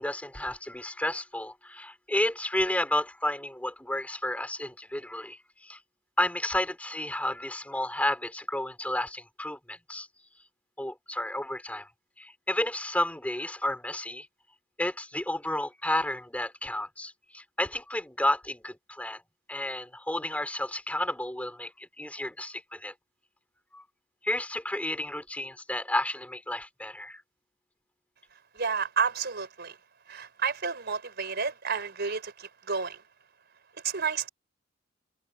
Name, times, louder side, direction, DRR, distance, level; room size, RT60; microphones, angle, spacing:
voice 1, 0.0-5.8 6.2-10.1 10.8-11.9 12.2-14.3 14.8-19.2 19.5-22.9 23.7-23.8 24.2-27.2, left 1 dB, 10° left, 4.1 m, -31 dB
voice 2, 28.5-29.8 30.1-33.0 33.8-34.3, right 5 dB, 60° right, 4.2 m, -31 dB
head